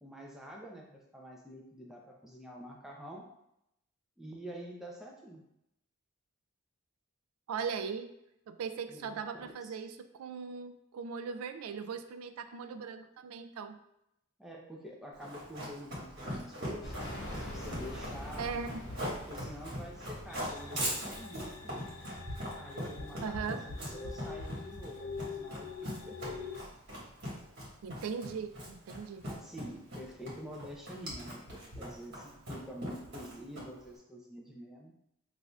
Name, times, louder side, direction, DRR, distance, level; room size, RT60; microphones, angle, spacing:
voice 1, 0.0-3.3 4.2-5.4 8.9-9.3 9.6-9.7 14.4-18.6 19.3-21.9 22.5-26.4 29.2-34.9, equal, ahead, -2 dB, 0.5 m, -47 dB
voice 2, 7.5-8.1 8.5-13.8 18.4-18.8 23.2-23.6 27.8-29.2, right 6 dB, 80° right, 9 dB, 0.3 m, -39 dB
Run, 15.2-33.9, equal, 50° right, 1.4 m, -40 dB
sound 1, 16.8-21.5, equal, 55° left, 1.0 m, -45 dB
sound 2, 20.3-26.6, left 5 dB, 90° left, 0.5 m, -45 dB
6.2 x 2.6 x 2.3 m, 0.80 s
head